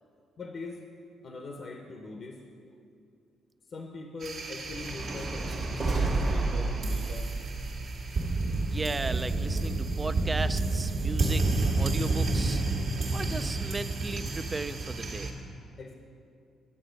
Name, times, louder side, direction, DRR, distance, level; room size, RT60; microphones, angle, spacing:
voice 1, 0.4-0.9 1.2-2.4 3.7-7.4 15.8-15.9, left 3 dB, 50° left, 3 dB, 0.8 m, -42 dB
sound 1, 4.2-15.3, right 2 dB, 70° right, 1.5 m, -30 dB
sound 2, 4.7-9.0, right 3 dB, 40° right, 1.2 m, -31 dB
voice 2, 8.7-11.4 11.8-12.6 13.1-15.3, right 3 dB, 25° right, 12 dB, 0.4 m, -35 dB
9.9 x 7.3 x 5.1 m, 2.5 s
cardioid pair, 90°, 0 cm